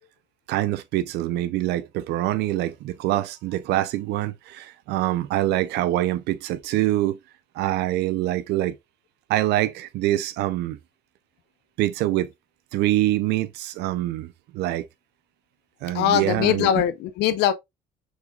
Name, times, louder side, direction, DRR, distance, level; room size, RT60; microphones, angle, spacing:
voice 1, 0.5-7.2 7.6-8.8 9.3-10.8 11.8-12.3 12.7-14.9 15.8-16.8, right 15 dB, 80° right, 0.5 m, -25 dB
voice 2, 15.9-17.5, left 10 dB, 85° left, 0.7 m, -21 dB
6.1 x 3.8 x 2.3 m
cardioid pair, 110°, 17 cm